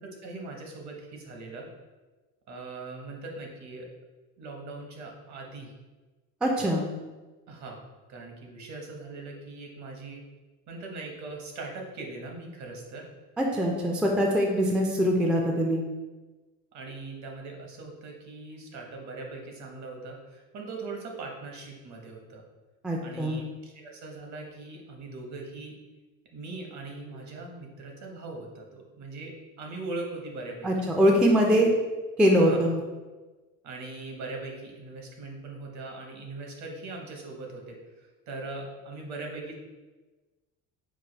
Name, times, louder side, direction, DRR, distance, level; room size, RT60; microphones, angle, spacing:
voice 1, 0.0-1.7 2.5-3.9 4.4-5.7 7.5-7.8 8.1-10.2 10.7-13.0 16.7-22.4 23.0-25.7 26.3-30.9 32.5-32.6 33.6-37.8 38.3-39.5, right 3 dB, 55° right, 1 dB, 1.0 m, -40 dB
voice 2, 6.4-6.8 13.4-15.8 22.8-23.4 30.6-31.7 32.2-32.8, equal, 5° right, 0 dB, 0.3 m, -23 dB
4.8 x 2.2 x 4.4 m, 1.2 s
cardioid pair, 145°, 34 cm